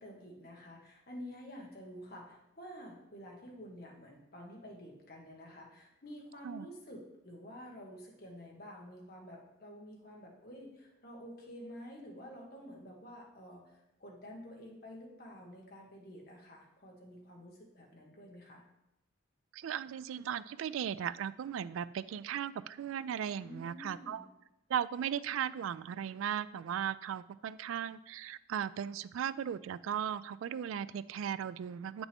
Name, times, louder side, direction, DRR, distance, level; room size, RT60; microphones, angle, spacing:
voice 1, 0.0-18.6 23.4-24.3, equal, 50° left, -1 dB, 1.6 m, -50 dB
voice 2, 19.5-24.3 24.7-32.1, right 8 dB, 85° right, 17 dB, 0.3 m, -37 dB
9.0 x 6.0 x 3.6 m, 0.89 s
head